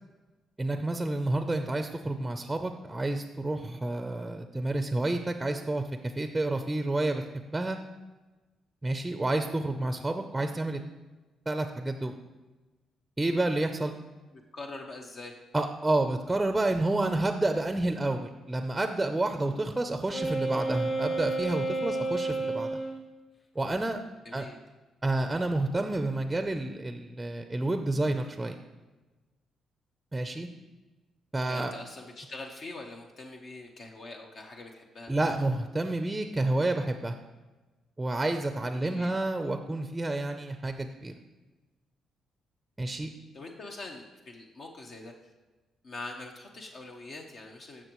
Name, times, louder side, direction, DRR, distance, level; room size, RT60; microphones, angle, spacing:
voice 1, 0.6-5.8 6.2-7.8 8.8-10.8 11.5-12.2 13.2-13.9 15.5-22.8 23.6-24.0 24.3-24.5 25.0-28.6 30.1-30.5 31.3-31.7 35.1-37.1 38.0-41.1 42.8-43.1, right 2 dB, 15° right, 7 dB, 0.6 m, -29 dB
voice 2, 14.5-15.3 24.2-24.6 31.5-35.1 38.8-39.1 43.3-45.1 45.8-47.8, left 2 dB, 55° left, 1 dB, 1.0 m, -43 dB
Wind instrument woodwind instrument, 20.1-23.0, right 2 dB, 40° left, 1.8 m, -31 dB
14.5 x 6.2 x 3.1 m, 1.2 s
cardioid pair, 90°, 0 cm